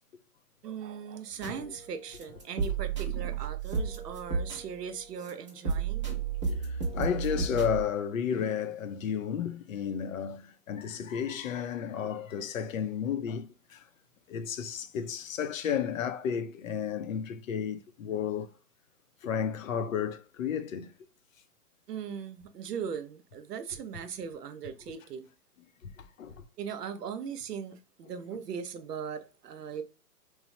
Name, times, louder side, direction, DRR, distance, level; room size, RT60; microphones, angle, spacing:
voice 1, 0.6-6.1 21.9-25.3 26.6-29.8, right 7 dB, 85° right, 0.7 m, -39 dB
sound 1, 1.4-1.6 2.1-4.9 5.2-7.8, right 5 dB, 20° right, 0.5 m, -32 dB
voice 2, 6.5-13.9 14.3-18.5 19.2-20.9 25.8-26.5, left 8 dB, 60° left, 0.5 m, -33 dB
3.0 x 2.0 x 2.7 m
hypercardioid pair, 150°, 47 cm